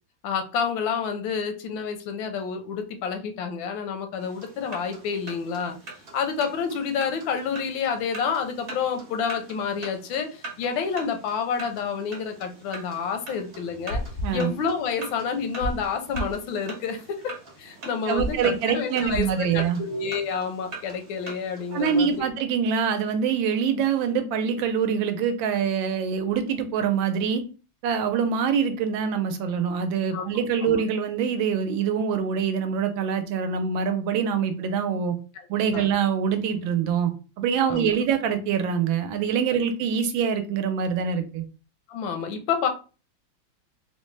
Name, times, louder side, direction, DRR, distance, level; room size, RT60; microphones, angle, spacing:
voice 1, 0.2-5.8 6.1-14.0 14.3-17.3 17.6-22.2 30.1-30.2 30.6-30.8 35.7-35.9 37.7-37.9 39.5-39.6 41.9-42.7, left 6 dB, 85° left, 1.4 m, -29 dB
sound 1, 4.2-22.2, right 2 dB, 60° right, 0.6 m, -43 dB
sound 2, 13.7-15.1 15.4-15.8 16.1-16.4 18.2-18.4 19.0-19.4, equal, 70° left, 0.8 m, -32 dB
voice 2, 18.1-19.8 21.7-27.4 27.8-35.1 35.5-37.1 37.4-41.4, right 7 dB, 80° right, 1.3 m, -25 dB
3.8 x 2.1 x 3.1 m
omnidirectional pair, 2.1 m